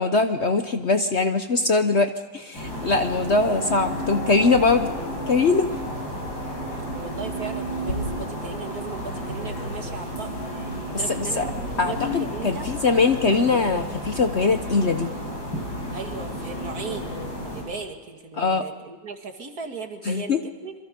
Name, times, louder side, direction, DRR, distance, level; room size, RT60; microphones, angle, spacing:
voice 1, 0.0-4.9 5.3-5.7 11.1-11.5 11.8-15.1 18.4-18.6 20.0-20.4, left 4 dB, 45° left, 8 dB, 0.9 m, -22 dB
sound 1, 2.5-17.6, equal, 80° left, 8.0 m, -32 dB
voice 2, 6.9-10.4 10.9-12.7 15.9-17.1 17.4-20.7, right 4 dB, 50° right, 5 dB, 2.4 m, -37 dB
27.0 x 23.0 x 5.3 m, 1.4 s
omnidirectional pair, 2.1 m